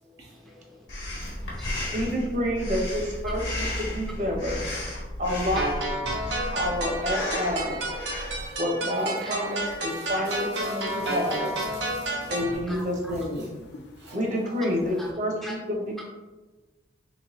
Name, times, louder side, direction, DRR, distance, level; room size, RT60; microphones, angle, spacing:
voice 1, 0.2-0.9 1.3-1.9 3.2-3.3 5.5-5.8 9.2-9.3 10.1-10.3 12.7-13.1 15.0-15.1 15.4-15.5, equal, ahead, -2 dB, 0.4 m, -42 dB
Breathing, 0.9-8.5, left 1 dB, 90° left, 1.1 m, -34 dB
voice 2, 1.9-4.6 5.2-5.7 6.5-7.8 8.6-11.5 12.3-13.5 14.1-16.1, left 1 dB, 45° right, 0 dB, 0.7 m, -28 dB
voice 3, 4.6-5.4 6.0-7.0 7.4-7.5 7.8-7.9 8.3-8.6 9.9-11.2 11.6-12.3 14.0-14.2, right 2 dB, 65° right, -2 dB, 1.0 m, -46 dB
sound 1, 5.6-12.6, right 1 dB, 85° right, 0.9 m, -31 dB
sound 2, 6.7-15.1, left 1 dB, 75° left, 0.5 m, -46 dB
3.3 x 3.1 x 2.9 m, 1.2 s
head